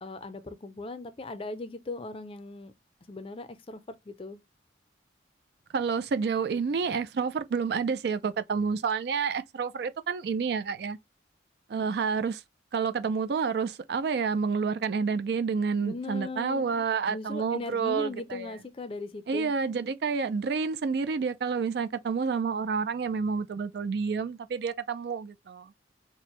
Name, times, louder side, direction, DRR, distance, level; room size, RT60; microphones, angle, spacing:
voice 1, 0.0-2.7 3.1-4.4 15.8-16.6 17.1-19.5, left 2 dB, 30° left, 0.4 m, -38 dB
voice 2, 5.7-11.0 11.7-12.4 12.7-18.5 19.3-25.7, right 5 dB, 60° right, 0.3 m, -29 dB
4.2 x 2.1 x 3.0 m
head